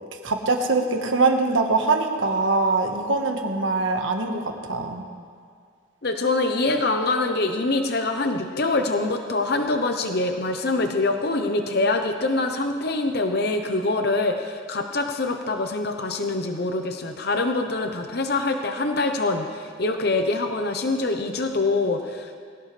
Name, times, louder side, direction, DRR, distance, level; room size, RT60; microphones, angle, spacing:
voice 1, 0.2-4.4 4.7-5.0, right 3 dB, 70° right, 3 dB, 1.4 m, -23 dB
voice 2, 6.0-22.3, left 2 dB, 50° left, 5 dB, 0.8 m, -24 dB
21.0 x 16.5 x 3.3 m, 2.1 s
head